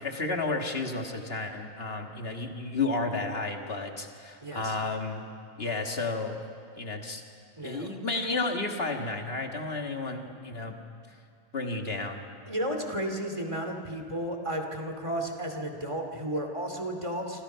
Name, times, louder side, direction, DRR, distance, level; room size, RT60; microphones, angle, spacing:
voice 1, 0.0-5.3 5.6-6.4 6.8-7.2 7.6-10.8 11.1-11.2 11.5-12.2, left 3 dB, 65° left, 3 dB, 2.0 m, -32 dB
voice 2, 4.4-4.7 7.6-7.9 12.5-17.4, right 1 dB, 30° right, 4 dB, 2.7 m, -33 dB
27.5 x 26.0 x 5.7 m, 2.4 s
omnidirectional pair, 1.1 m